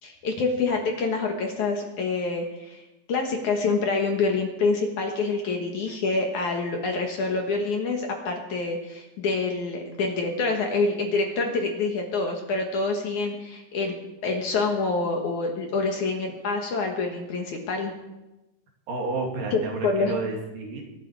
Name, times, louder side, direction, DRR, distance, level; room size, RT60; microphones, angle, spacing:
voice 1, 0.0-2.8 3.1-13.9 14.2-17.9 19.5-20.2, left 3 dB, 60° left, 2 dB, 2.5 m, -26 dB
voice 2, 18.9-20.8, right 3 dB, 60° right, 1 dB, 3.9 m, -31 dB
22.5 x 11.5 x 4.8 m, 1.0 s
omnidirectional pair, 4.6 m